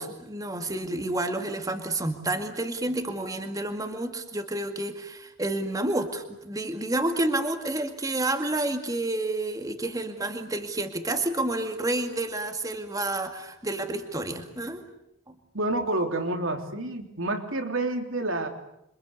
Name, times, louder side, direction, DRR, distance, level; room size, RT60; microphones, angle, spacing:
voice 1, 0.0-14.8 15.3-15.4, right 2 dB, 15° right, 6 dB, 2.2 m, -30 dB
voice 2, 15.5-18.5, right 2 dB, 70° right, 5 dB, 3.5 m, -28 dB
28.0 x 25.0 x 8.4 m, 0.81 s
head